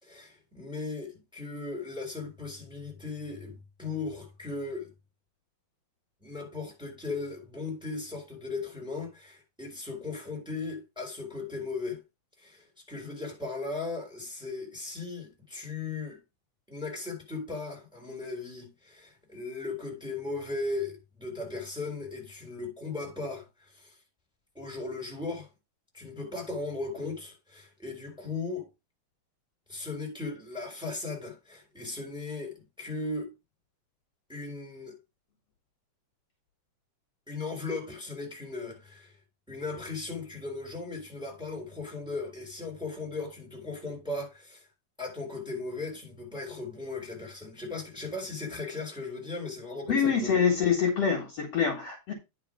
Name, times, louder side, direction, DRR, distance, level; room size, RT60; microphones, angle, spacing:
voice 1, 0.0-4.9 6.2-12.0 12.4-16.2 16.7-23.9 24.5-25.5 25.9-28.7 29.7-33.3 34.3-35.0 37.3-39.2 39.5-44.7 45.0-50.3, left 3 dB, ahead, 3.3 m, -37 dB
voice 2, 49.9-52.1, left 6 dB, 60° left, 2.3 m, -25 dB
9.7 x 4.9 x 4.9 m
omnidirectional pair, 3.7 m